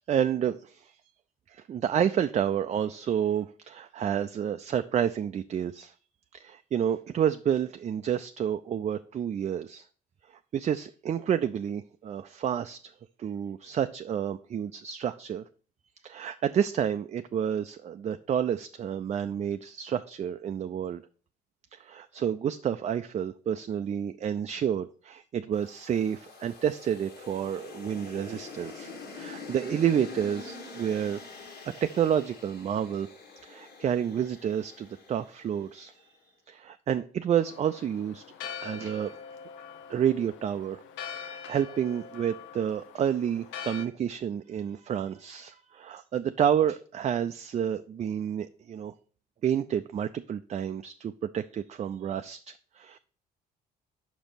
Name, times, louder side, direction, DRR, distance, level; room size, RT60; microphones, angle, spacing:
voice 1, 0.1-0.9 1.5-5.9 6.3-9.8 10.5-12.8 13.2-15.4 16.0-21.0 21.7-31.2 31.7-33.1 33.4-36.1 36.5-39.2 39.9-40.8 41.1-48.9 49.4-53.0, right 9 dB, 35° right, 9 dB, 0.4 m, -29 dB
sound 1, 25.5-35.9, left 4 dB, 55° left, 1.6 m, -45 dB
Church bell, 37.4-43.9, left 7 dB, 75° left, 0.6 m, -43 dB
5.2 x 5.2 x 5.6 m, 0.42 s
supercardioid pair, 70°, 20 cm